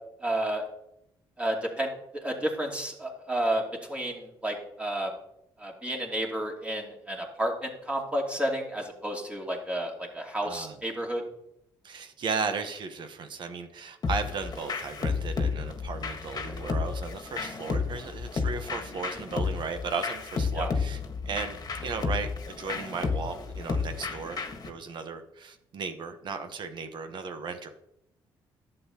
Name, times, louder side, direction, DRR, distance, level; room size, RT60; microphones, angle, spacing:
voice 1, 0.2-0.6 1.4-3.6 3.9-5.1 5.6-11.2 20.5-20.7, right 1 dB, 15° right, 0 dB, 2.7 m, -31 dB
voice 2, 10.4-10.8 11.8-21.6 21.8-27.7, right 5 dB, 60° right, 8 dB, 1.1 m, -35 dB
sound 1, 14.0-24.7, left 5 dB, 45° left, 1.5 m, -32 dB
11.0 x 7.9 x 2.9 m, 0.80 s
supercardioid pair, 70°, 9 cm